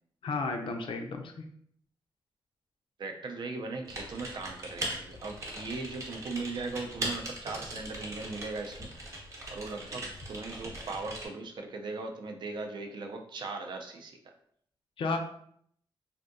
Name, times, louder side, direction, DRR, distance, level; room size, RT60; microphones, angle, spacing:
voice 1, 0.2-1.4 15.0-15.2, left 3 dB, 70° left, 4 dB, 0.4 m, -32 dB
voice 2, 3.0-9.2 9.5-14.3, right 3 dB, 55° right, 3 dB, 0.4 m, -39 dB
Typing, 3.9-11.3, right 1 dB, 30° right, 0.8 m, -40 dB
3.3 x 2.6 x 2.5 m, 0.66 s
wide cardioid pair, 165°, 9 cm